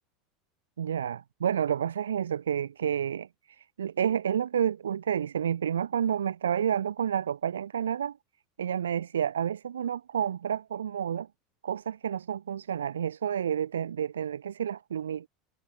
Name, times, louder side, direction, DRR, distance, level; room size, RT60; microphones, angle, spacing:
voice 1, 0.8-3.3 3.8-8.2 8.6-11.3 11.6-15.3, right 9 dB, 90° right, 3.0 m, -30 dB
hypercardioid pair, 85°, 0 cm